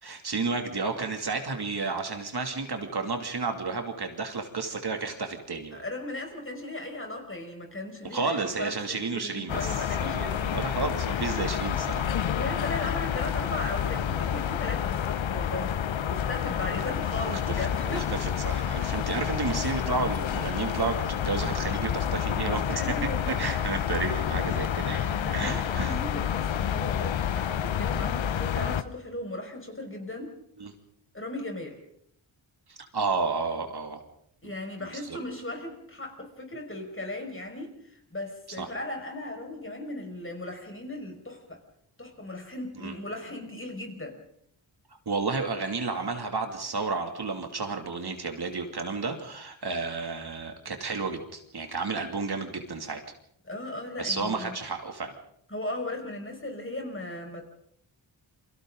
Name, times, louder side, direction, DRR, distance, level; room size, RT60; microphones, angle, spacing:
voice 1, 0.0-5.8 8.0-12.1 17.2-22.8 23.4-26.0 30.6-30.7 32.7-34.0 34.4-34.5 34.8-35.2 38.6-38.7 42.8-42.9 45.1-53.0 54.0-55.1, right 4 dB, 55° right, 4 dB, 2.7 m, -32 dB
voice 2, 5.7-10.6 12.3-15.8 16.1-18.1 22.7-23.3 25.0-30.3 31.1-31.8 34.4-37.8 38.1-41.6 42.0-44.2 53.4-54.5 55.5-57.5, left 1 dB, 25° left, 3 dB, 5.4 m, -37 dB
sound 1, 9.5-28.8, left 9 dB, 75° left, 0.9 m, -29 dB
29.0 x 24.0 x 3.9 m, 0.69 s
wide cardioid pair, 80°, 46 cm